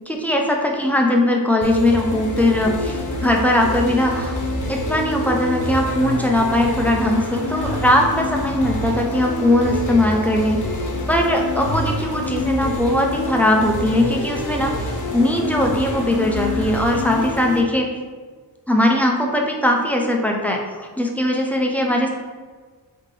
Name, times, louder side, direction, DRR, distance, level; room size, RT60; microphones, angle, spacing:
voice 1, 0.1-4.4 4.7-10.6 11.1-17.9 18.7-20.6 21.0-22.1, left 1 dB, 5° left, 0 dB, 0.3 m, -19 dB
sound 1, 1.6-17.6, left 2 dB, 45° left, 0.6 m, -27 dB
3.2 x 2.8 x 3.7 m, 1.5 s
wide cardioid pair, 130°, 41 cm